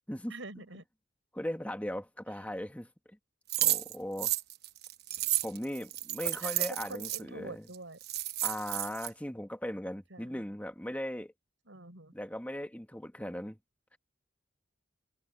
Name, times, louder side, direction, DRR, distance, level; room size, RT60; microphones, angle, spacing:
voice 1, 0.3-0.8 6.2-8.0 10.1-10.4 11.7-12.1, right 2 dB, 85° right, 4.8 m, -45 dB
voice 2, 1.3-2.9 3.6-4.3 5.4-7.6 8.4-11.3 12.1-13.6 13.9-14.0, equal, 10° left, 2.0 m, -38 dB
sound 1, 3.5-7.2 7.7-7.8 8.0-9.1, right 14 dB, 60° right, 1.0 m, -32 dB
head